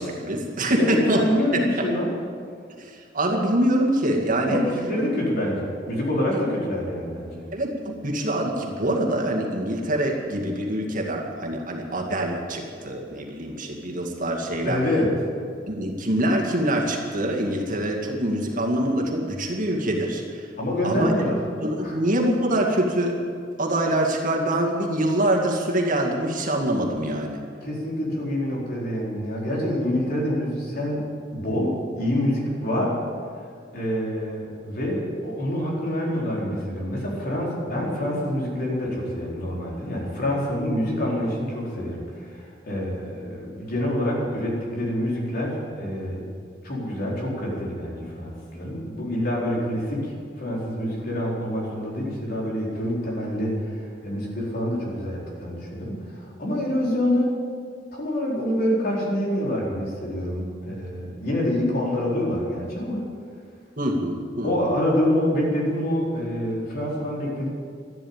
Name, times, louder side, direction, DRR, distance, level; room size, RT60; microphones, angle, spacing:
voice 1, 0.0-1.2 1.8-1.9 2.8-4.6 6.3-6.4 7.5-14.9 15.7-20.5 20.8-21.1 21.6-23.2 23.6-27.4 63.8-64.7, right 1 dB, 45° right, 0 dB, 2.1 m, -25 dB
voice 2, 0.8-2.1 4.4-7.5 14.6-15.1 20.6-21.3 21.8-22.0 27.6-31.0 31.3-33.0 33.7-46.3 46.6-57.3 57.9-63.1 64.4-67.5, left 1 dB, 55° left, -4 dB, 4.4 m, -26 dB
13.0 x 11.5 x 8.8 m, 2.2 s
head